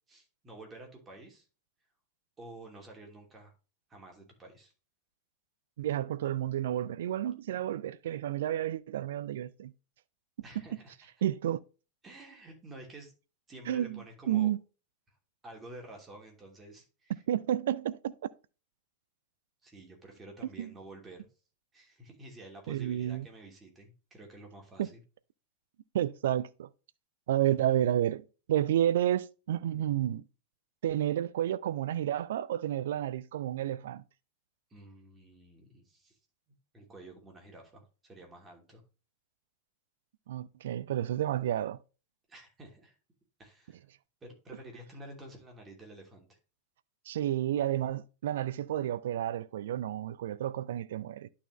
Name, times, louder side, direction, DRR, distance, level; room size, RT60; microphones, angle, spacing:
voice 1, 0.1-1.5 2.4-3.5 3.9-4.7 10.4-11.1 12.0-13.1 13.5-14.5 15.1-15.2 15.4-17.1 19.6-21.3 21.7-25.0 34.7-36.2 36.7-38.8 42.3-43.0 43.4-43.8 44.2-46.4, right 1 dB, 20° right, 2.7 m, -50 dB
voice 2, 5.8-9.7 11.2-11.6 13.7-14.6 17.3-18.1 20.6-20.7 22.7-23.3 24.8-24.9 25.9-26.7 27.3-30.2 30.8-34.0 40.3-41.8 47.1-51.3, right 11 dB, 60° right, 0.4 m, -31 dB
11.5 x 4.2 x 3.1 m
figure-of-eight pair, 90°, 0 cm